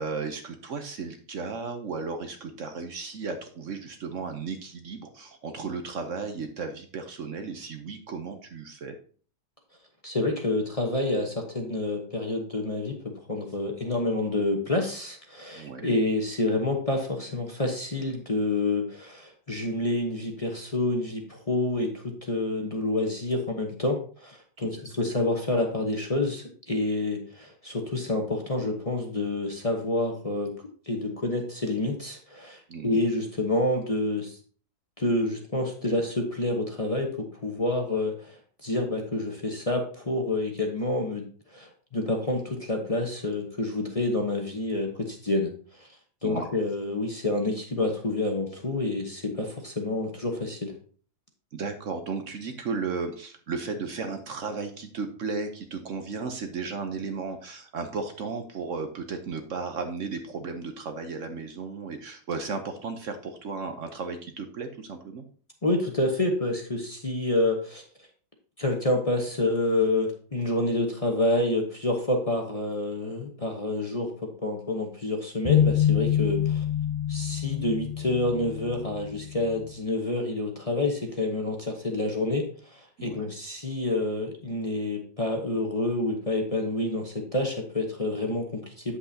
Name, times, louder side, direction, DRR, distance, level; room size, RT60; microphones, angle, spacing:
voice 1, 0.0-9.0 15.5-15.9 32.7-33.0 46.2-46.5 51.5-65.2 83.0-83.2, right 4 dB, 60° right, 6 dB, 1.1 m, -34 dB
voice 2, 10.0-13.0 13.3-30.5 30.9-34.4 35.0-41.3 41.5-45.5 45.8-45.9 46.2-50.7 65.6-67.8 68.6-76.6 77.1-89.0, left 2 dB, 25° left, 2 dB, 0.9 m, -28 dB
sound 1, 75.4-79.7, left 10 dB, 80° left, 0.6 m, -26 dB
8.5 x 7.8 x 2.8 m, 0.43 s
omnidirectional pair, 1.7 m